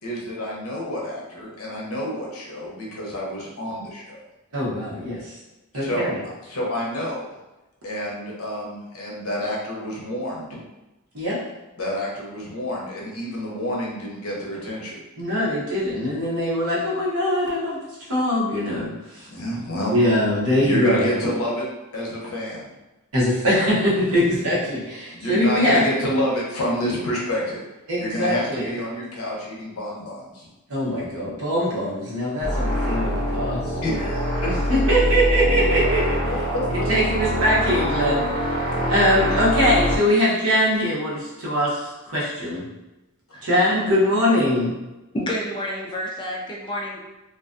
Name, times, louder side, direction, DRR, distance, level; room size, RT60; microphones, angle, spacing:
voice 1, 0.0-4.2 5.7-6.1 6.4-7.3 7.8-10.6 11.8-15.0 19.3-19.9 20.6-21.6 21.9-22.7 25.1-27.6 28.0-30.5 33.8-34.5 36.5-36.9 39.3-39.4, equal, 70° left, -3 dB, 0.7 m, -28 dB
voice 2, 4.5-5.4 5.7-6.2 11.1-11.4 15.2-17.8 18.1-19.3 19.9-21.1 23.1-25.8 27.9-28.7 30.7-33.7 34.4-36.3 36.9-38.6 38.9-42.6 43.4-44.7, equal, 70° right, -6 dB, 0.9 m, -22 dB
sound 1, 32.4-40.0, equal, 10° right, 1.0 m, -24 dB
voice 3, 45.1-47.0, equal, 20° left, -2 dB, 0.4 m, -29 dB
2.4 x 2.2 x 2.5 m, 1.0 s
head